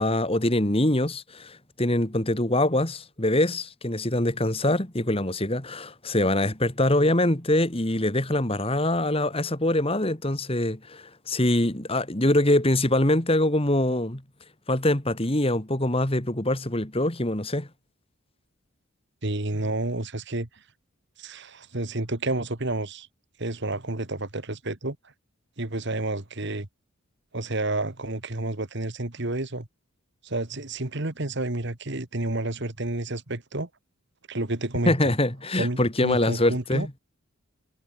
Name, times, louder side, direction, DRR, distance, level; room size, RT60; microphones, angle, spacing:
voice 1, 0.0-14.2 14.7-17.7 34.9-36.9, left 1 dB, 25° left, 2.3 m, -24 dB
voice 2, 19.2-20.5 21.2-23.1 23.4-25.0 25.6-26.7 27.3-29.7 30.2-33.7 34.3-34.9 35.5-36.9, right 2 dB, 55° right, 2.0 m, -30 dB
head